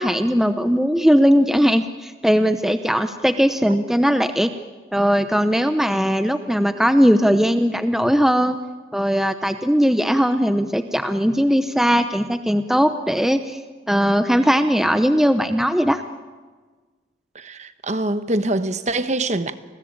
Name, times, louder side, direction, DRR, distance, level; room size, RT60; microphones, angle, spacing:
voice 1, 0.0-4.5 4.9-8.6 8.9-13.6 13.9-16.0, equal, ahead, 0.7 m, -19 dB
voice 2, 17.3-19.5, right 2 dB, 40° right, 1.1 m, -24 dB
30.0 x 21.0 x 8.8 m
head